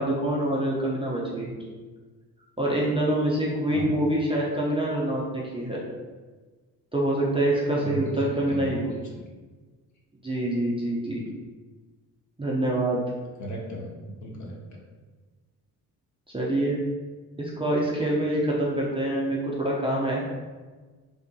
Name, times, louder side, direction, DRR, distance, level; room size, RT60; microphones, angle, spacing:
voice 1, 0.0-1.6 2.6-5.8 6.9-8.9 10.2-11.2 12.4-13.0 16.3-16.8 17.4-20.2, right 1 dB, 10° right, -6 dB, 0.5 m, -26 dB
voice 2, 3.7-4.1 7.8-9.2 13.4-14.8, right 2 dB, 40° left, -2 dB, 0.7 m, -37 dB
2.7 x 2.4 x 2.3 m, 1.4 s
hypercardioid pair, 45°, 48 cm